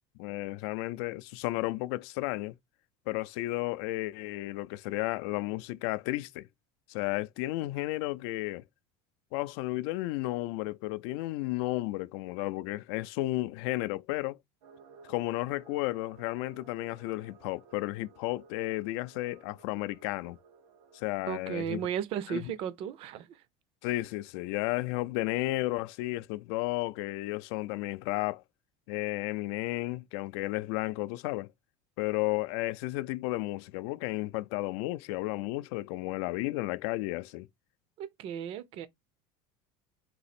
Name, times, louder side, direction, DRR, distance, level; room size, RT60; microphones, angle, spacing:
voice 1, 0.2-2.5 3.1-6.5 6.9-8.6 9.3-14.4 15.1-20.4 20.9-21.8 22.3-22.5 23.8-28.4 28.9-31.5 32.0-37.5, left 19 dB, 65° left, 0.4 m, -33 dB
sound 1, 14.6-21.1, right 5 dB, 75° right, 1.1 m, -56 dB
voice 2, 21.3-23.4 38.0-38.9, right 8 dB, 40° right, 0.5 m, -35 dB
4.0 x 2.9 x 4.2 m
cardioid pair, 165°, 14 cm